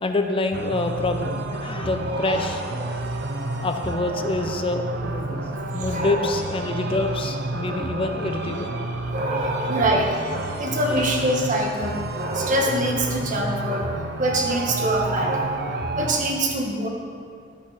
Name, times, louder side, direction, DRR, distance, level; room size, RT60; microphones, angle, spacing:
voice 1, 0.0-2.6 3.6-5.4 5.7-8.8 11.0-11.1 12.2-12.3, left 2 dB, 30° left, 5 dB, 0.6 m, -26 dB
sound 1, 0.5-16.2, right 2 dB, 60° right, 0.7 m, -30 dB
voice 2, 2.0-2.5 2.8-3.1 5.7-6.3 6.7-6.8 7.7-7.9 9.1-13.9 14.2-15.6 15.9-16.9, right 1 dB, 40° right, 0 dB, 1.4 m, -25 dB
12.5 x 6.5 x 4.9 m, 2.3 s
head